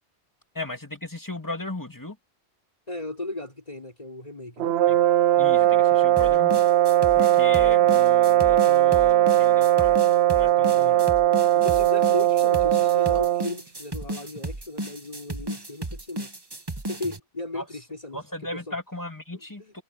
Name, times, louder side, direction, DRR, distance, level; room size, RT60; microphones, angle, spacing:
voice 1, 0.5-2.2 4.9-5.0 5.4-6.6 7.2-10.1 10.3-11.0 17.5-17.6 18.1-19.8, left 2 dB, 20° left, 2.5 m, -36 dB
voice 2, 2.9-4.7 10.8-11.0 11.5-16.3 16.9-18.7 19.3-19.8, left 2 dB, 40° left, 4.2 m, -36 dB
sound 1, 4.6-13.5, right 13 dB, 80° right, 0.9 m, -19 dB
sound 2, 6.2-17.2, right 1 dB, 25° right, 1.4 m, -34 dB
omnidirectional pair, 1.1 m